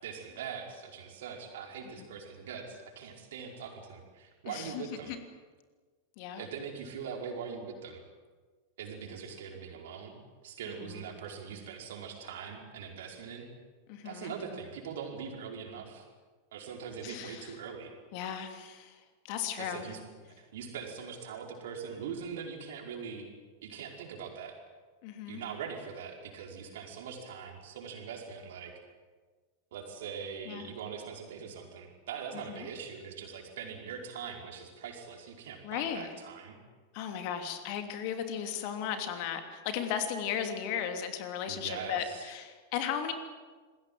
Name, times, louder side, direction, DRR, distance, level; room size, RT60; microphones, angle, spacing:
voice 1, 0.0-5.1 6.4-8.0 8.8-13.5 14.0-16.1 16.5-17.9 19.6-23.3 23.6-24.6 25.3-28.7 29.7-36.6 41.5-42.3, right 6 dB, 55° right, 2 dB, 5.0 m, -42 dB
voice 2, 4.5-5.2 6.2-6.4 10.8-11.0 13.9-14.3 17.0-17.5 18.1-19.9 25.0-25.4 30.5-30.7 32.5-32.7 35.6-36.1 36.9-43.1, left 8 dB, 45° left, 6 dB, 3.0 m, -36 dB
27.5 x 21.5 x 7.8 m, 1.4 s
figure-of-eight pair, 90°, 0 cm